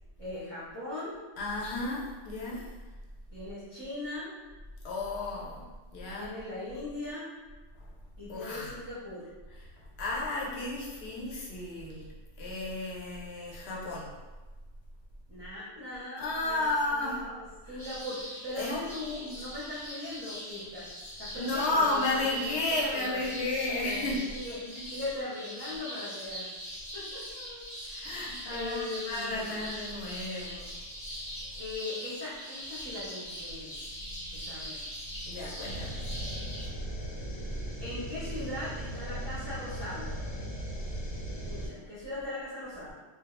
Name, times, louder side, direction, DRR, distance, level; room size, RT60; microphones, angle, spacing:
voice 1, 0.2-1.2 3.3-4.3 6.2-7.3 8.2-9.3 15.3-20.9 21.2-23.3 23.6-26.5 26.9-29.6 31.5-33.8 34.3-34.8 37.8-40.1 41.5-42.9, left 2 dB, 30° right, -12 dB, 0.5 m, -40 dB
voice 2, 1.4-2.6 4.8-5.6 5.9-6.3 8.3-8.7 10.0-14.1 16.2-17.2 18.6-19.3 21.3-24.2 28.0-30.7 34.1-34.2 35.1-36.0 40.8-41.7, left 2 dB, 65° left, -4 dB, 0.8 m, -33 dB
sound 1, 17.8-36.7, equal, 25° left, 0.9 m, -42 dB
sound 2, 35.7-41.7, right 1 dB, 85° left, 1.0 m, -38 dB
2.2 x 2.0 x 2.9 m, 1.2 s
omnidirectional pair, 1.3 m